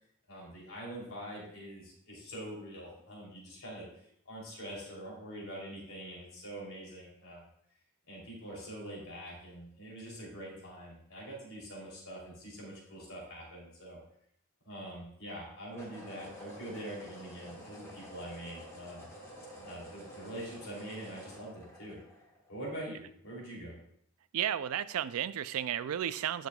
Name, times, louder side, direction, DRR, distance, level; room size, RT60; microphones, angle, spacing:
voice 1, 0.3-3.9 4.2-7.4 8.1-14.0 14.6-19.1 19.5-22.0 22.5-23.8, right 1 dB, 80° left, -3 dB, 3.2 m, -44 dB
sound 1, 11.5-11.8 15.7-22.7, equal, 15° left, 1.4 m, -50 dB
voice 2, 24.3-26.5, right 10 dB, 85° right, 16 dB, 0.3 m, -33 dB
10.5 x 6.3 x 2.3 m, 0.71 s
head